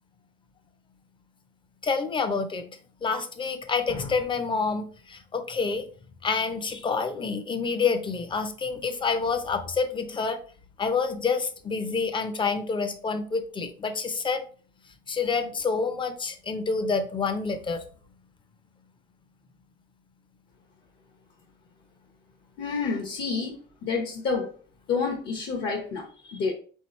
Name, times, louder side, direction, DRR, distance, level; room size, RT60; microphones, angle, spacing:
voice 1, 1.8-2.7 3.0-5.9 6.2-10.4 10.8-14.4 15.1-17.8, left 4 dB, 25° left, 9 dB, 0.6 m, -28 dB
voice 2, 22.6-24.5 24.9-26.5, left 4 dB, 60° left, 1 dB, 1.1 m, -29 dB
4.6 x 3.8 x 3.0 m, 0.42 s
cardioid pair, 145°, 21 cm